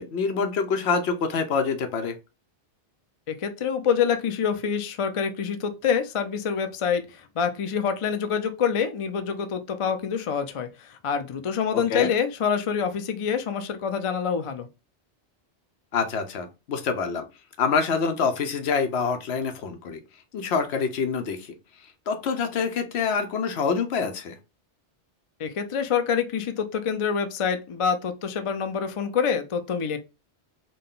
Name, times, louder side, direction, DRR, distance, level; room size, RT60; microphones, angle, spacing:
voice 1, 0.0-2.1 11.7-12.1 15.9-17.3 17.6-20.0 20.3-21.5 22.1-24.4, left 5 dB, 75° left, 0.9 m, -26 dB
voice 2, 3.3-14.7 25.4-30.0, left 7 dB, 50° left, 0.4 m, -26 dB
3.8 x 2.2 x 3.7 m
omnidirectional pair, 1.1 m